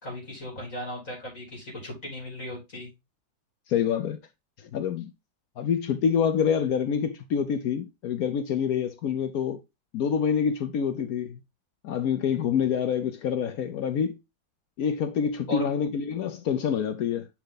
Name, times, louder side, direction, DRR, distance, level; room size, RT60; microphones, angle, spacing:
voice 1, 0.0-2.9 15.5-15.8, equal, 40° left, 2.8 m, -37 dB
voice 2, 3.7-4.2 4.7-5.1 5.6-9.6 9.9-11.4 11.8-14.2 14.8-17.3, left 7 dB, 70° left, 0.9 m, -26 dB
9.8 x 3.4 x 3.8 m
omnidirectional pair, 2.1 m